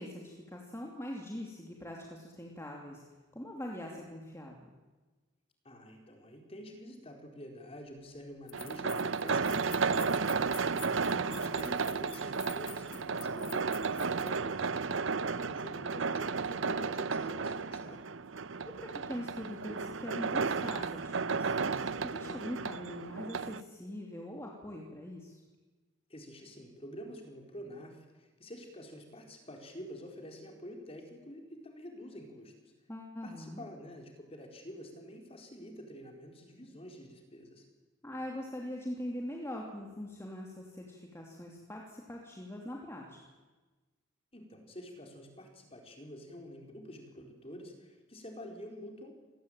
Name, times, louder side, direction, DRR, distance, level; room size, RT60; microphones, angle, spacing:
voice 1, 0.0-3.0 3.3-4.7 11.1-11.5 18.6-25.4 32.9-33.6 38.0-43.2, left 1 dB, 15° left, -1 dB, 2.8 m, -42 dB
voice 2, 5.6-10.7 11.2-18.0 26.1-32.7 33.2-37.6 44.3-49.1, equal, 30° left, 2 dB, 4.4 m, -48 dB
sound 1, 7.9-8.0 8.5-14.3, left 13 dB, 45° left, 2.2 m, -50 dB
sound 2, 8.5-23.6, right 5 dB, 70° right, 0.8 m, -33 dB
27.0 x 18.5 x 9.0 m, 1.3 s
head